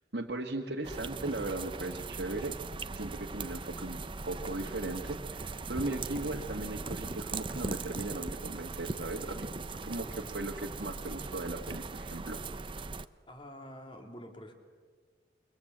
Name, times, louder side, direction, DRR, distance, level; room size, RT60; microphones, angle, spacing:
voice 1, 0.1-2.6 2.9-4.0 4.3-9.5 9.8-12.4, right 2 dB, 70° right, -1 dB, 1.9 m, -37 dB
sound 1, 0.8-13.0, right 3 dB, 30° right, 0.7 m, -39 dB
sound 2, 2.0-7.0, equal, 85° left, 4.6 m, -58 dB
voice 2, 13.3-14.5, equal, 30° left, 4 dB, 3.3 m, -47 dB
29.0 x 23.5 x 8.1 m, 1.5 s
head